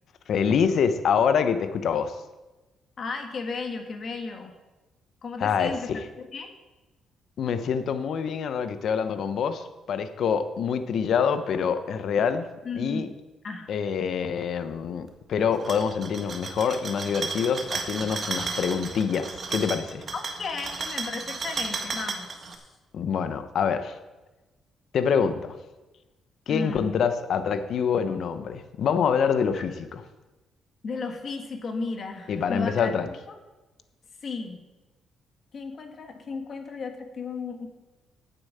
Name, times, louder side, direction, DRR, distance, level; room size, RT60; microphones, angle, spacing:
voice 1, 0.3-2.2 5.4-6.0 7.4-12.5 12.7-13.1 13.7-20.0 22.9-24.0 24.9-25.5 26.5-30.0 32.3-33.1, left 6 dB, 65° left, 10 dB, 0.9 m, -26 dB
voice 2, 3.0-4.5 5.2-6.0 6.3-6.5 12.6-13.1 13.4-13.7 20.1-22.6 26.5-27.0 29.5-29.6 30.8-32.9 34.2-34.7 35.5-37.7, left 4 dB, 50° left, 5 dB, 1.6 m, -34 dB
sound 1, 15.5-22.6, right 4 dB, 45° right, 1.5 m, -33 dB
9.0 x 7.0 x 7.5 m, 1.1 s
cardioid pair, 90°, 0 cm